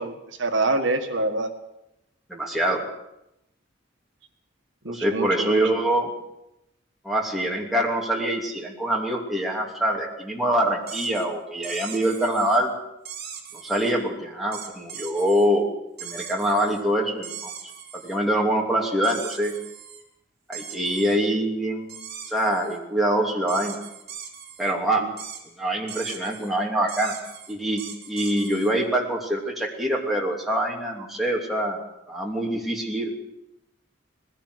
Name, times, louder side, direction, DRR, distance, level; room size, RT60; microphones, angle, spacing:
voice 1, 0.0-1.5 4.8-5.6 25.0-25.1, right 2 dB, 70° right, 6 dB, 1.7 m, -26 dB
voice 2, 2.3-2.8 4.9-6.1 7.0-12.7 13.5-15.7 16.0-17.5 18.0-19.5 20.5-22.0 22.3-23.8 24.6-25.0 25.6-27.1 27.5-27.8 28.1-31.8 32.1-33.1, right 1 dB, ahead, -2 dB, 2.9 m, -24 dB
sound 1, 10.9-11.3 11.6-12.6 13.1-13.9 14.5-15.5 16.0-16.8 17.2-18.2 19.0-20.0 20.5-21.2 21.9-22.8 23.5-24.7 25.2-25.4 25.9-26.5 26.9-28.7, right 8 dB, 50° right, 3.3 m, -39 dB
20.0 x 16.0 x 8.1 m, 0.87 s
head